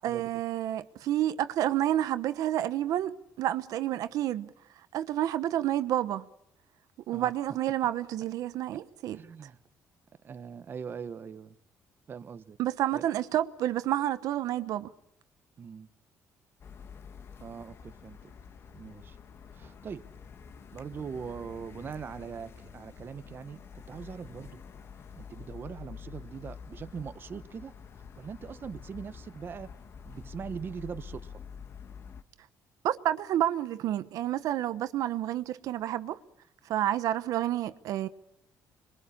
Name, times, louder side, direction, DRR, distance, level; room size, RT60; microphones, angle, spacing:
voice 1, 0.0-4.5 4.9-6.3 7.1-9.2 12.6-14.9 32.8-36.2 36.6-38.1, right 12 dB, 75° right, 1.0 m, -29 dB
voice 2, 9.1-9.6 10.2-11.6 12.1-12.6 12.9-13.0 15.6-15.9 17.4-18.3 18.7-19.2 19.5-20.1 20.7-24.6 25.2-27.7 28.2-29.7 30.0-31.4, right 6 dB, 35° right, 1.0 m, -41 dB
sound 1, 16.6-32.2, left 6 dB, 45° left, 1.4 m, -47 dB
27.0 x 22.5 x 8.5 m
cardioid pair, 135°, 6 cm